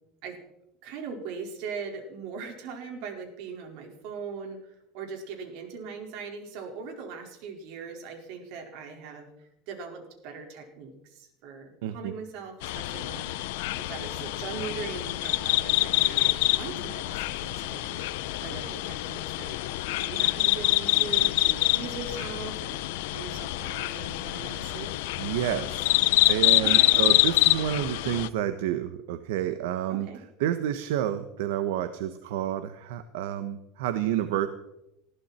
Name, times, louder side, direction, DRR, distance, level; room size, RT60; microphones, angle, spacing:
voice 1, 0.8-9.3 9.7-13.5 13.8-18.0 18.4-19.6 20.0-24.9 26.6-27.0 29.9-30.2, right 5 dB, 65° right, 2 dB, 4.9 m, -40 dB
voice 2, 11.8-12.1 25.2-26.0 26.3-30.1 30.4-34.5, right 11 dB, 80° right, 10 dB, 1.2 m, -29 dB
sound 1, 12.6-28.3, left 19 dB, 75° left, 0.8 m, -26 dB
21.0 x 15.0 x 4.4 m, 0.85 s
supercardioid pair, 140°, 0 cm